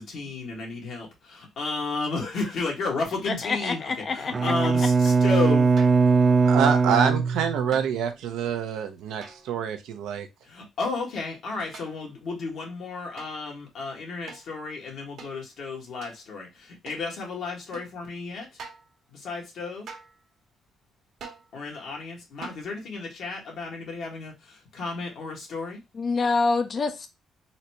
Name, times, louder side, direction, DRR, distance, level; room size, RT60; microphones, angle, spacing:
voice 1, 0.0-3.8 4.1-5.7 10.4-18.5 19.1-19.9 21.5-25.8, left 3 dB, 70° left, 1.5 m, -33 dB
voice 2, 3.3-4.5 4.8-4.9 25.9-27.1, left 4 dB, 45° left, 0.5 m, -26 dB
sound 1, 3.8-4.2 5.8-6.2 7.7-8.1 9.2-9.7 11.5-12.2 13.2-13.4 14.3-14.5 15.2-15.4 16.0-16.2 16.9-17.1 17.7-17.9 18.6-18.9 19.9-20.2 21.2-21.5 22.4-22.7, right 5 dB, 70° right, 1.1 m, -45 dB
Bowed string instrument, 4.3-7.9, right 4 dB, 35° right, 0.4 m, -20 dB
voice 3, 6.4-10.3, right 7 dB, 85° right, 0.6 m, -26 dB
4.0 x 2.2 x 2.8 m
cardioid pair, 90°, 0 cm